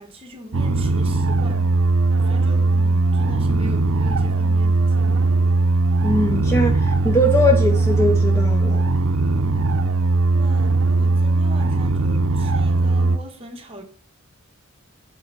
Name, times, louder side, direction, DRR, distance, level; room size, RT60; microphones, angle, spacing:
voice 1, 0.0-1.7 2.2-5.4 9.3-9.8 10.3-13.8, equal, 25° right, 1.2 m, -39 dB
sound 1, 0.5-13.2, right 3 dB, 65° right, 0.6 m, -19 dB
voice 2, 6.0-8.8, left 1 dB, 10° left, 0.6 m, -21 dB
7.5 x 3.5 x 5.3 m
head